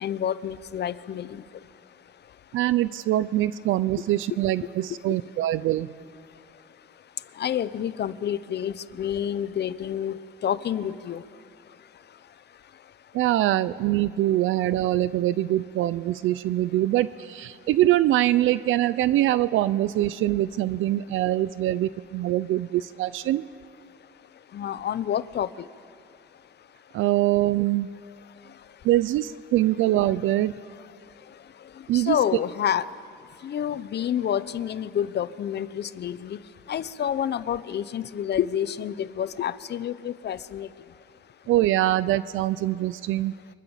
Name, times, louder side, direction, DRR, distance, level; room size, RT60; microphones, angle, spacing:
voice 1, 0.0-1.4 7.4-11.2 24.5-25.5 31.9-32.8 33.4-36.4 36.7-40.7, left 9 dB, 55° left, 15 dB, 0.9 m, -28 dB
voice 2, 2.5-5.9 13.1-23.4 26.9-27.9 28.8-30.5 31.9-32.2 41.5-43.3, right 14 dB, 85° right, 16 dB, 0.6 m, -23 dB
29.5 x 24.5 x 7.3 m, 2.4 s
cardioid pair, 90°, 20 cm